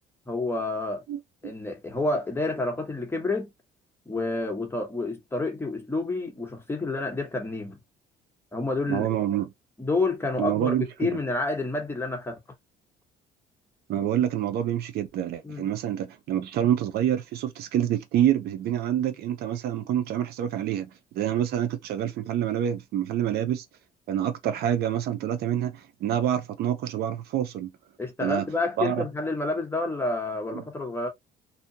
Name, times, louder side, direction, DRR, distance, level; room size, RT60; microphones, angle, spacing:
voice 1, 0.3-1.0 1.4-3.5 4.1-7.8 8.5-9.1 9.8-12.4 15.4-15.7 28.0-31.1, left 2 dB, 15° left, 0.9 m, -29 dB
voice 2, 1.1-1.5 8.9-9.5 10.4-11.2 13.9-20.9 21.1-23.7 24.1-27.7 28.2-28.4 28.8-29.0 30.5-30.6, right 10 dB, 70° right, 0.5 m, -27 dB
2.7 x 2.2 x 2.7 m
cardioid pair, 110°, 17 cm